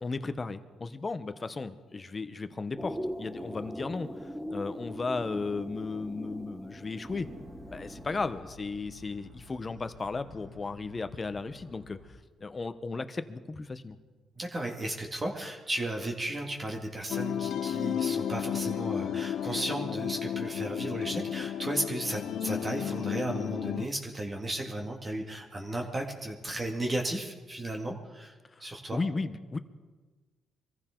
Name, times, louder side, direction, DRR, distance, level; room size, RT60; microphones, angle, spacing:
voice 1, 0.0-7.3 7.7-12.0 12.4-14.0 28.5-28.6 28.9-29.6, left 3 dB, 30° left, 11 dB, 1.0 m, -35 dB
sound 1, 2.8-8.3, equal, 5° right, 1.3 m, -40 dB
sound 2, 7.1-12.1, left 3 dB, 75° right, 4.3 m, -52 dB
voice 2, 14.4-29.0, right 1 dB, 25° right, 1 dB, 2.2 m, -34 dB
sound 3, 17.1-23.9, left 9 dB, 70° left, 0.6 m, -33 dB
24.0 x 14.5 x 3.9 m, 1.3 s
cardioid pair, 90°, 0 cm